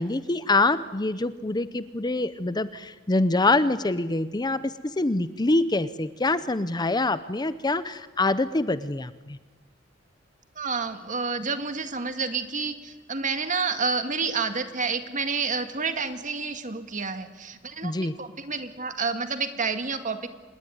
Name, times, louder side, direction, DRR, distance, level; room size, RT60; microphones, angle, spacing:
voice 1, 0.0-9.4 17.8-18.1, left 2 dB, 20° left, 14 dB, 0.7 m, -25 dB
voice 2, 10.6-20.3, right 4 dB, 40° right, 8 dB, 2.0 m, -29 dB
26.0 x 20.5 x 9.5 m, 1.3 s
head